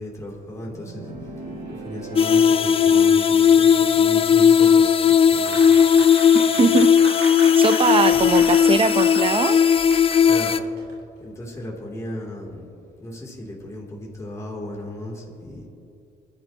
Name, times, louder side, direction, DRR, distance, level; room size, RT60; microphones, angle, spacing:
voice 1, 0.0-4.9 5.2-5.6 5.8-6.1 8.1-8.2 10.2-10.5 11.2-12.7 13.0-15.7, left 1 dB, 20° left, -3 dB, 3.2 m, -36 dB
sound 1, 0.6-3.6, right 1 dB, 55° right, 3.6 m, -38 dB
sound 2, 2.2-10.6, left 7 dB, 35° left, 0.5 m, -16 dB
Applause, 5.4-10.9, right 2 dB, 75° right, 2.6 m, -37 dB
voice 2, 6.6-6.9 7.4-9.6, right 5 dB, 35° right, 11 dB, 0.9 m, -21 dB
26.0 x 11.5 x 3.0 m, 2.7 s
cardioid pair, 85°, 16 cm